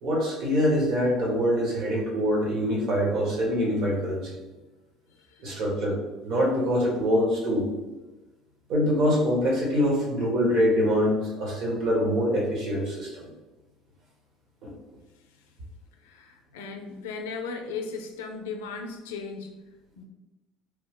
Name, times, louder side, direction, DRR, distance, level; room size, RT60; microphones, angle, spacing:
voice 1, 0.0-4.3 5.4-6.0 6.2-7.7 8.7-13.3 14.6-14.7, equal, 65° right, -3 dB, 1.4 m, -24 dB
voice 2, 16.0-19.5 20.0-20.1, left 4 dB, 90° left, 4 dB, 0.4 m, -36 dB
3.3 x 2.2 x 3.5 m, 1.1 s
supercardioid pair, 80°, 0 cm